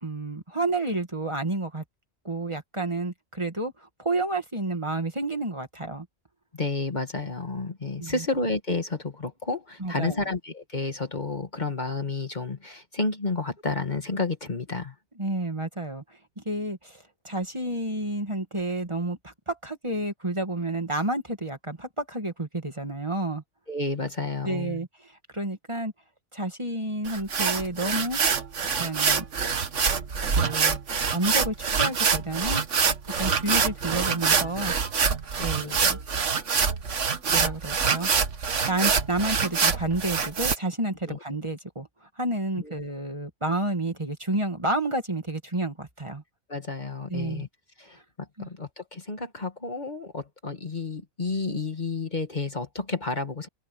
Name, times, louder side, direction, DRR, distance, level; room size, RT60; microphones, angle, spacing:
voice 1, 0.0-1.8 2.2-6.1 8.0-8.3 9.8-10.2 15.2-23.4 24.4-25.9 26.3-28.2 28.7-29.3 30.4-30.8 31.1-32.6 33.1-34.7 35.4-36.0 37.3-38.1 38.7-46.2 47.1-47.5 47.9-48.0 48.4-48.5, right 2 dB, 25° right, 2.0 m, -30 dB
voice 2, 6.5-14.9 23.7-24.8 35.4-35.8 41.1-41.2 46.5-47.5 47.8-48.0 48.4-53.5, left 3 dB, 40° left, 1.8 m, -31 dB
sound 1, 27.1-40.6, right 6 dB, 80° right, 1.7 m, -25 dB
open air
omnidirectional pair, 1.2 m